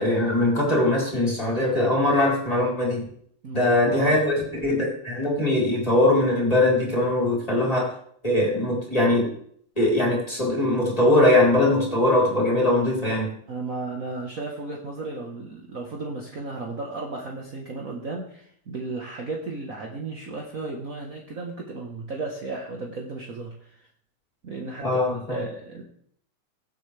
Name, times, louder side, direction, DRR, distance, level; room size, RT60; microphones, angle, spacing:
voice 1, 0.0-3.1 3.5-7.9 8.2-9.3 9.8-13.3 24.8-25.4, left 1 dB, 15° left, -3 dB, 4.0 m, -21 dB
voice 2, 3.4-4.2 13.5-23.9 24.4-25.0 25.3-25.8, right 3 dB, 45° right, -1 dB, 1.6 m, -34 dB
22.5 x 8.0 x 3.4 m, 0.64 s
omnidirectional pair, 2.4 m